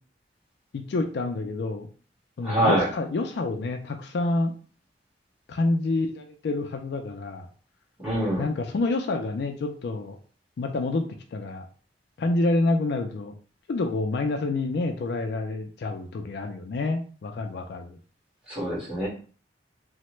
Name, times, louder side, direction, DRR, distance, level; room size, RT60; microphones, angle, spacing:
voice 1, 0.7-1.9 2.4-4.5 5.5-7.5 8.4-10.2 10.6-11.1 11.3-11.7 12.2-13.3 13.7-18.0, left 2 dB, 60° left, 5 dB, 0.3 m, -28 dB
voice 2, 2.4-2.9 8.0-8.4 18.5-19.1, right 1 dB, 5° right, -9 dB, 1.6 m, -24 dB
3.2 x 2.1 x 3.0 m, 0.41 s
head